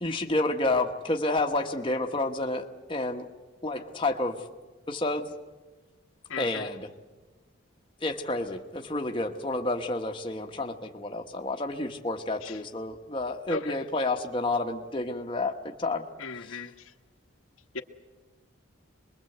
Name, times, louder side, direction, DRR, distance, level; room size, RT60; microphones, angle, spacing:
voice 1, 0.0-3.2 3.6-4.4 4.9-5.3 6.4-6.9 8.0-16.0 16.5-16.6, left 2 dB, 25° left, 1.2 m, -30 dB
voice 2, 6.3-6.7 12.4-12.6 13.5-13.8 16.2-16.9 17.7-17.8, left 4 dB, 85° left, 1.3 m, -37 dB
25.0 x 21.5 x 7.9 m
head